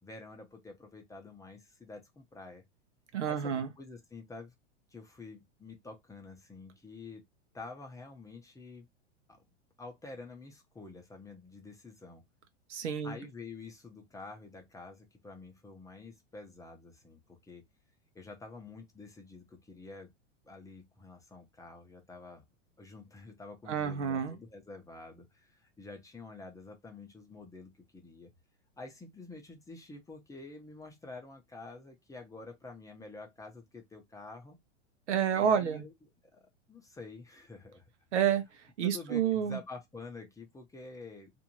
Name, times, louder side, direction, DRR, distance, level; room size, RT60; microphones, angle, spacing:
voice 1, 0.0-2.6 3.3-4.5 4.9-7.2 7.5-8.9 9.3-9.4 9.8-12.2 13.0-17.6 18.1-20.1 20.4-22.4 22.8-28.3 28.8-34.6 35.3-35.9 36.3-37.9 38.8-41.3, left 3 dB, 10° left, 0.7 m, -48 dB
voice 2, 3.1-3.7 12.7-13.2 23.7-24.4 35.1-35.9 38.1-39.6, right 8 dB, 75° right, 0.8 m, -29 dB
2.6 x 2.5 x 2.9 m
hypercardioid pair, 100°, 35 cm